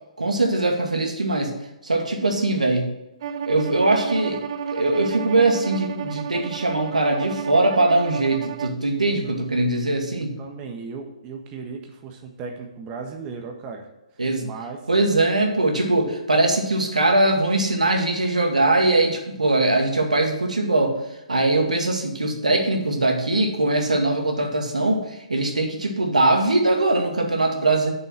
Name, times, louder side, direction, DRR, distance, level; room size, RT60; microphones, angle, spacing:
voice 1, 0.2-1.5 1.8-2.9 3.5-4.4 4.7-10.4 14.2-14.5 14.9-21.0 21.3-27.9, right 2 dB, 80° right, 2 dB, 2.1 m, -21 dB
Bowed string instrument, 3.2-8.8, right 7 dB, 45° right, 0.7 m, -31 dB
voice 2, 10.2-13.9 14.1-14.9, right 4 dB, 25° right, 2 dB, 1.4 m, -36 dB
8.4 x 6.9 x 6.2 m, 0.97 s
figure-of-eight pair, 130°, 4 cm